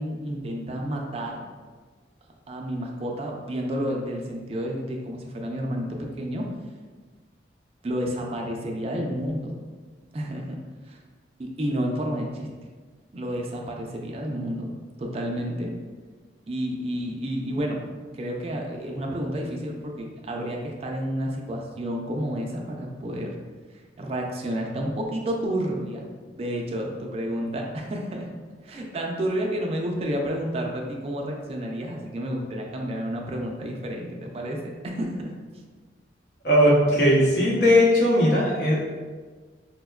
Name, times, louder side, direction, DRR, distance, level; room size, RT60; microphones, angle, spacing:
voice 1, 0.0-1.4 2.5-6.5 7.8-9.6 10.1-10.6 10.9-11.0 11.4-12.5 13.1-14.7 15.0-15.7 16.5-17.9 18.1-23.4 23.7-28.3 28.6-35.3, equal, 35° right, 0 dB, 0.3 m, -30 dB
voice 2, 36.4-38.8, equal, 65° left, -5 dB, 0.8 m, -18 dB
4.4 x 2.1 x 2.3 m, 1.4 s
head